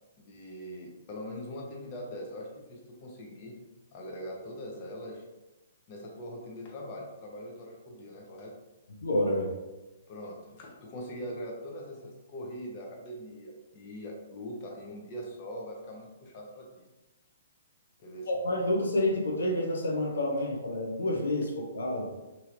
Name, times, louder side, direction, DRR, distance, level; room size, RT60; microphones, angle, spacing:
voice 1, 0.2-3.5 3.9-5.2 5.9-8.5 10.1-16.9 18.0-18.3, equal, 40° left, -1 dB, 0.7 m, -42 dB
voice 2, 9.0-9.5 18.3-22.1, left 1 dB, 75° left, 0 dB, 0.6 m, -29 dB
3.1 x 2.7 x 2.5 m, 1.1 s
figure-of-eight pair, 125°, 0 cm